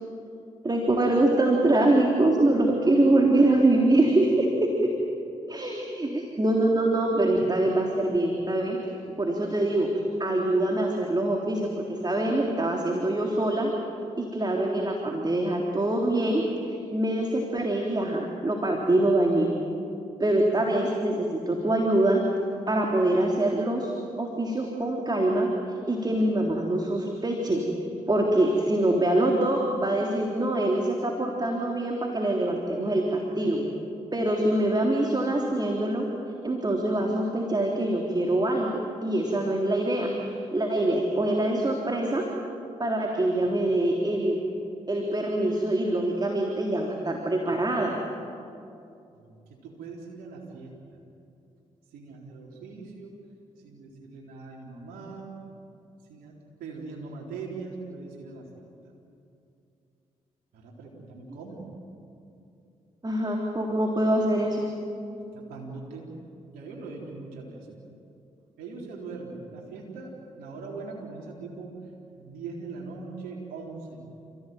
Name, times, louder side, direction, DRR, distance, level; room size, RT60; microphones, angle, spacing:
voice 1, 0.6-4.7 5.5-8.8 9.2-9.9 10.2-13.7 14.2-19.5 20.2-22.2 22.7-23.9 24.2-25.5 25.9-27.6 28.1-33.6 34.1-36.1 36.4-42.2 42.8-44.4 44.9-48.0 63.0-64.7, right 1 dB, 30° right, 0 dB, 3.6 m, -24 dB
voice 2, 49.1-50.7 51.9-53.1 53.6-55.4 56.1-58.7 60.5-61.6 65.3-66.1 66.5-67.8 68.6-71.9 72.2-74.0, right 4 dB, 80° right, -2 dB, 4.0 m, -41 dB
29.0 x 16.0 x 9.3 m, 2.7 s
hypercardioid pair, 45°, 15 cm